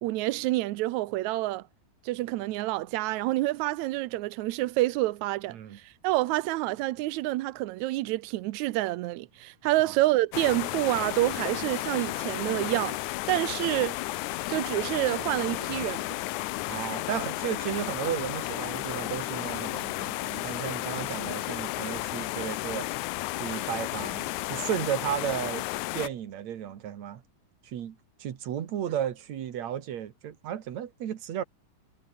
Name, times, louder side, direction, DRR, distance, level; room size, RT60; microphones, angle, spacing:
voice 1, 0.0-1.6 2.0-13.0 13.3-14.0 14.5-16.0, right 17 dB, 80° right, 1.7 m, -28 dB
voice 2, 5.5-5.8 9.8-9.9 16.7-22.9 23.4-25.7 25.9-27.2 27.6-31.4, right 10 dB, 55° right, 2.7 m, -34 dB
sound 1, 10.3-26.1, left 19 dB, 85° left, 1.7 m, -33 dB
omnidirectional pair, 4.0 m